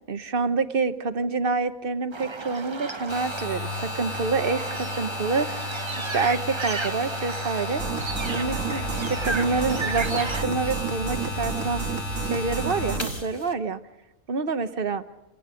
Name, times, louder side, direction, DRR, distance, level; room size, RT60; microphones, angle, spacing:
voice 1, 0.1-5.5 6.0-7.8 8.3-11.8 12.2-13.8 14.3-15.0, right 4 dB, 45° right, 11 dB, 1.1 m, -27 dB
sound 1, 2.1-10.4, right 3 dB, 25° right, 0.7 m, -34 dB
sound 2, 3.1-13.5, left 3 dB, 20° left, 2.0 m, -33 dB
sound 3, 7.8-13.2, right 6 dB, 70° right, 1.8 m, -31 dB
27.5 x 18.5 x 5.1 m, 1.0 s
omnidirectional pair, 1.5 m